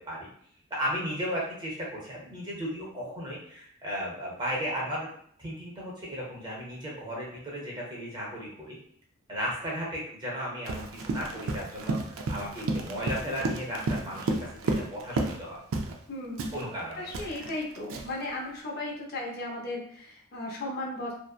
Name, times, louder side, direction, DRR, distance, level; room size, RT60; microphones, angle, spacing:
voice 1, 0.7-5.1 5.4-8.8 9.3-15.6 16.5-17.4, equal, 20° right, -3 dB, 0.7 m, -35 dB
Run, 10.6-15.4 15.7-16.0 16.4-18.2, right 2 dB, 75° right, 0.4 m, -32 dB
voice 2, 16.1-16.5 17.0-21.1, left 2 dB, 50° left, -2 dB, 0.5 m, -36 dB
2.6 x 2.1 x 2.3 m, 0.62 s
head